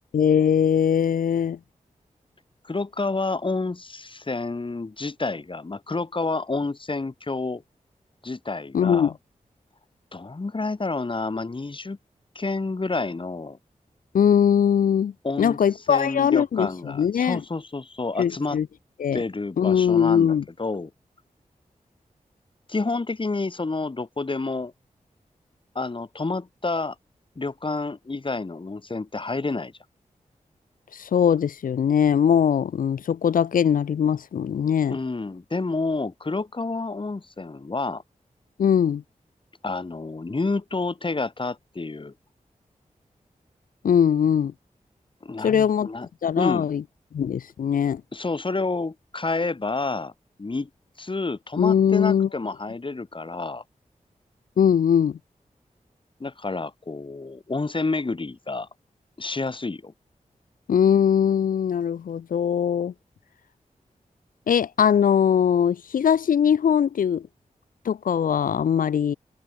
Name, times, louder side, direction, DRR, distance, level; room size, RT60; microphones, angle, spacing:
voice 1, 0.1-1.6 8.7-9.1 14.1-15.1 15.4-17.4 18.2-18.7 19.0-19.2 19.6-20.4 30.9-35.0 38.6-39.0 43.8-44.5 45.4-45.9 46.2-46.8 47.1-48.0 51.6-52.3 54.6-55.2 60.7-62.9 64.5-67.3 67.9-69.1, left 8 dB, 85° left, 0.5 m, -21 dB
voice 2, 2.6-7.6 8.2-9.1 10.1-12.0 12.3-13.6 15.2-15.6 15.9-18.6 19.1-20.9 22.7-24.7 25.7-26.9 27.4-29.7 34.9-38.0 39.6-42.1 45.2-46.1 46.4-46.7 48.1-50.1 50.4-50.7 51.0-53.6 56.2-58.7 59.2-59.9, left 3 dB, 40° left, 3.1 m, -29 dB
wide cardioid pair, 85°, 14 cm